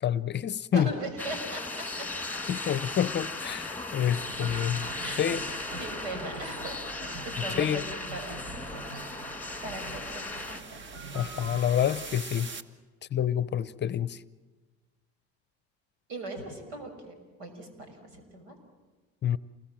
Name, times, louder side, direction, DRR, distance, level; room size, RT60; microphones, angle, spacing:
voice 1, 0.0-0.9 2.5-4.9 5.2-5.4 7.6-7.8 11.1-12.5 13.1-14.2 19.2-19.4, left 9 dB, 35° left, 0.7 m, -28 dB
voice 2, 0.7-2.1 5.0-5.2 5.7-6.8 7.2-7.8 8.1-9.0 9.6-10.9 16.1-18.5, right 2 dB, 85° right, 6.0 m, -39 dB
sound 1, 1.2-10.6, left 2 dB, 5° left, 2.0 m, -37 dB
sound 2, 4.0-12.1, right 3 dB, 70° right, 4.2 m, -44 dB
sound 3, 7.7-12.6, right 4 dB, 35° right, 1.4 m, -46 dB
28.0 x 21.0 x 7.6 m
supercardioid pair, 90°, 32 cm